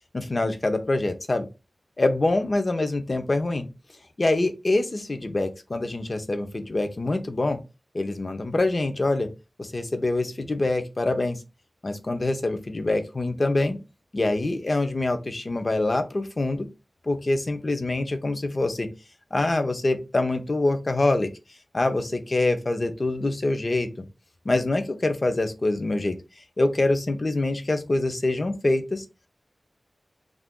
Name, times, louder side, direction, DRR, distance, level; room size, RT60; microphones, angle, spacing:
voice 1, 0.1-1.5 2.0-3.7 4.2-7.6 7.9-9.3 9.6-11.4 11.8-13.8 14.1-16.7 17.0-18.9 19.3-21.3 21.7-24.0 24.4-26.1 26.6-29.0, left 2 dB, 45° left, 7 dB, 0.5 m, -25 dB
2.5 x 2.3 x 3.5 m, 0.28 s
wide cardioid pair, 80°, 0 cm